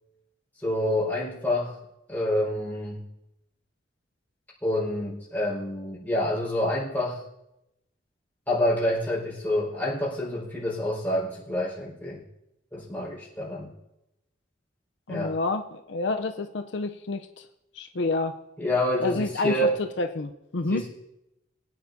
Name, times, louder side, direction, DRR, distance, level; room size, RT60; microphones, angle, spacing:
voice 1, 0.6-1.8 2.1-3.0 4.6-7.2 8.5-12.2 12.7-13.7 15.1-15.4 18.6-19.8 20.7-20.9, left 1 dB, 10° left, -7 dB, 4.8 m, -27 dB
voice 2, 15.1-17.4 17.8-18.3 19.0-20.8, left 3 dB, 75° left, 6 dB, 0.6 m, -29 dB
22.5 x 9.4 x 2.7 m, 0.88 s
head